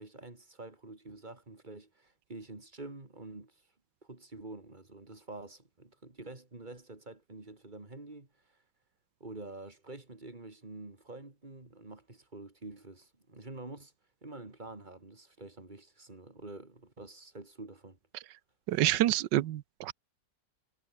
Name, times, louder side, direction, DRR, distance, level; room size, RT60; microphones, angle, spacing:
voice 1, 0.0-3.6 4.0-8.6 9.2-13.9 14.2-18.0, right 2 dB, 25° right, 3.3 m, -47 dB
voice 2, 18.7-19.9, right 14 dB, 80° right, 1.4 m, -27 dB
omnidirectional pair, 1.9 m